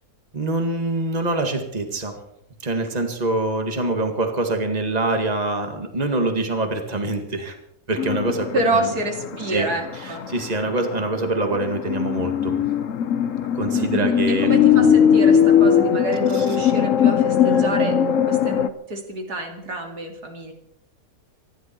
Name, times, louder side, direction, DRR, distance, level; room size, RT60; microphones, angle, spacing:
voice 1, 0.3-2.2 2.6-7.6 7.9-8.9 9.5-9.7 10.0-12.6 13.6-14.9 16.3-16.6 17.4-18.2, right 2 dB, 25° right, 5 dB, 2.0 m, -25 dB
sound 1, 8.0-9.4 9.7-10.3 10.7-10.8 11.5-18.7, left 8 dB, 60° left, 1.2 m, -19 dB
voice 2, 8.5-10.2 13.7-18.0 18.3-20.5, right 2 dB, 90° right, 3 dB, 3.2 m, -28 dB
26.0 x 11.5 x 4.5 m, 0.78 s
omnidirectional pair, 1.6 m